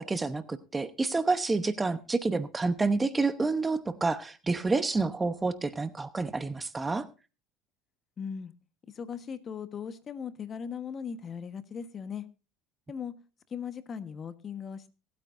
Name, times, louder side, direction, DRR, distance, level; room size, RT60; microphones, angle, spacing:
voice 1, 0.0-7.0, right 3 dB, 15° right, 13 dB, 0.9 m, -29 dB
voice 2, 8.2-8.5 8.9-12.3 12.9-13.1 13.5-14.9, left 7 dB, 35° left, 12 dB, 1.3 m, -38 dB
24.5 x 8.9 x 2.6 m, 0.31 s
supercardioid pair, 105°, 0 cm